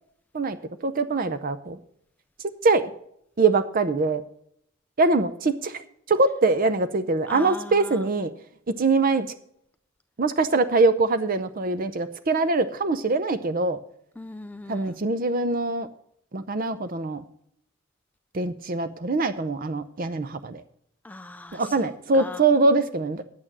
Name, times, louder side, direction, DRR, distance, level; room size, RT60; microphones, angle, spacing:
voice 1, 0.8-1.8 2.4-2.8 3.4-4.2 5.0-8.3 8.7-9.3 10.2-13.8 14.7-15.9 16.3-17.2 18.3-20.6 21.5-23.2, right 3 dB, 40° right, 11 dB, 0.6 m, -23 dB
voice 2, 7.3-8.0 14.2-15.0 21.0-22.4, left 2 dB, 10° left, 9 dB, 0.3 m, -39 dB
10.0 x 8.7 x 6.0 m, 0.72 s
head